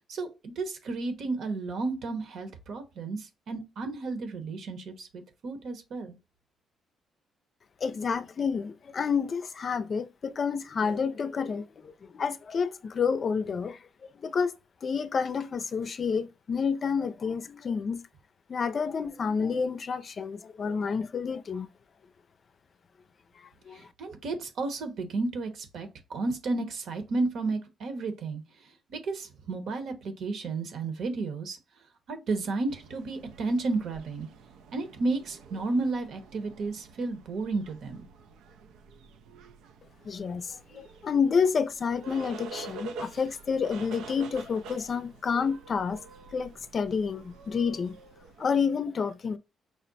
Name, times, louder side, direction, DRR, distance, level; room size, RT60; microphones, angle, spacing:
voice 1, 0.1-6.2 23.7-28.4 28.9-31.6 32.1-34.3 34.7-38.0, right 3 dB, 70° right, 1.0 m, -32 dB
voice 2, 7.8-13.8 14.2-14.5 14.8-18.0 18.5-21.7 23.4-23.8 40.0-46.0 46.3-48.0 48.4-49.4, left 6 dB, 45° left, 0.5 m, -29 dB
sound 1, 32.7-48.5, right 4 dB, 90° right, 0.5 m, -47 dB
4.9 x 2.1 x 4.0 m
cardioid pair, 90°, 0 cm